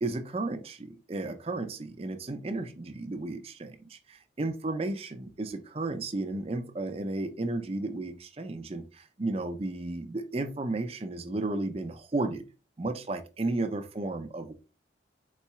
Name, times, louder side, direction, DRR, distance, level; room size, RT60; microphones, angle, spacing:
voice 1, 0.0-12.4 12.8-14.5, right 2 dB, 30° right, 8 dB, 0.5 m, -33 dB
4.2 x 4.1 x 2.3 m, 0.31 s
head